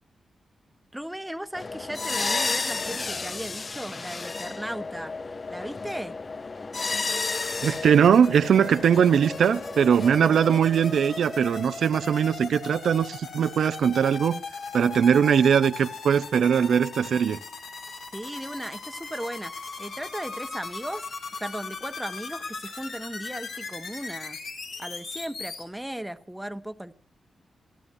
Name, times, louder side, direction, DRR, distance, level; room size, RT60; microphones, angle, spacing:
voice 1, 0.9-6.2 18.1-21.1 21.4-24.4 24.8-27.0, right 1 dB, 5° right, 1.1 m, -36 dB
sound 1, 1.5-12.5, left 3 dB, 35° left, 0.5 m, -33 dB
sound 2, 7.1-25.6, left 4 dB, 80° left, 3.7 m, -38 dB
voice 2, 7.6-14.4 14.7-17.4, right 7 dB, 85° right, 0.6 m, -21 dB
27.5 x 11.5 x 2.7 m
cardioid pair, 95°, 0 cm